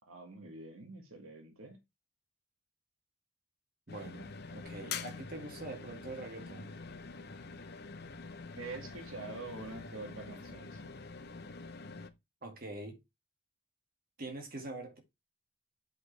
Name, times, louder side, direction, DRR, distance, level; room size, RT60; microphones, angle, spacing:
voice 1, 0.1-1.8 8.6-10.9, right 3 dB, 85° right, 2.1 m, -46 dB
sound 1, 3.9-12.1, left 4 dB, 50° left, 0.9 m, -45 dB
voice 2, 3.9-6.7 12.4-13.0 14.2-15.0, right 2 dB, 45° right, 2.1 m, -44 dB
7.9 x 5.6 x 3.3 m
head